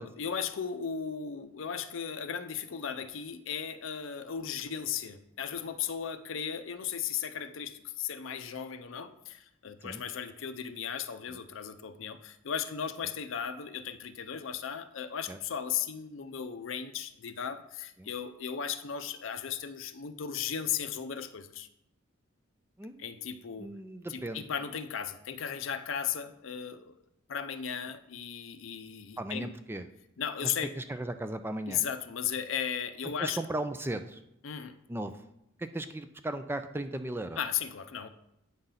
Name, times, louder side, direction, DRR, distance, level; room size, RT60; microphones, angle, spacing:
voice 1, 0.0-21.7 23.0-23.7 24.1-26.9 27.3-29.5 30.2-30.7 31.7-33.4 34.4-34.8 37.4-38.1, left 8 dB, 65° left, 11 dB, 0.5 m, -36 dB
voice 2, 22.8-23.3 23.6-24.4 29.2-29.9 30.4-31.8 33.0-34.2 34.9-35.2 35.6-37.4, right 1 dB, 10° right, 9 dB, 0.3 m, -37 dB
9.0 x 3.9 x 5.6 m, 0.82 s
head